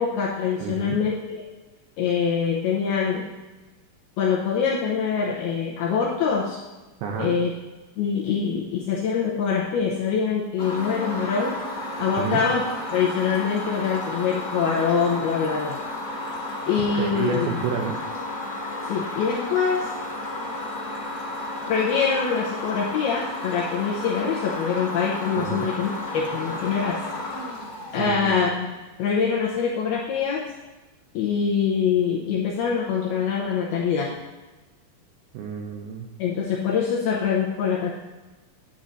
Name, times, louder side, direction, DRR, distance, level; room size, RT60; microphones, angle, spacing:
voice 1, 0.0-1.4 2.0-3.3 4.2-6.6 7.2-7.5 8.0-11.6 12.0-12.7 12.9-15.8 16.7-17.6 18.9-19.9 21.7-27.0 27.9-30.5 31.1-34.2 36.2-37.9, left 6 dB, 85° left, -3 dB, 2.2 m, -24 dB
voice 2, 0.6-1.0 7.0-7.4 12.2-12.4 17.0-18.0 25.4-25.7 28.0-28.3 35.3-36.1, right 6 dB, 85° right, 1 dB, 2.2 m, -29 dB
sound 1, 10.6-28.5, left 1 dB, 45° left, 0.8 m, -33 dB
10.5 x 8.5 x 2.7 m, 1.2 s
omnidirectional pair, 5.4 m